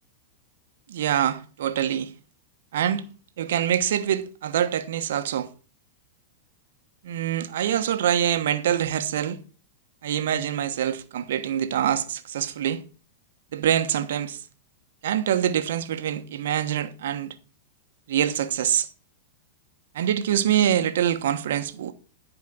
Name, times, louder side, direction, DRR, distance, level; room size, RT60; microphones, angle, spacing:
voice 1, 0.9-2.1 2.7-3.0 3.4-5.5 7.0-9.4 10.0-12.8 13.5-14.4 15.0-17.3 18.1-18.9 19.9-21.9, right 10 dB, 75° right, 1.2 m, -25 dB
11.0 x 4.9 x 7.4 m
hypercardioid pair, 115°, 0 cm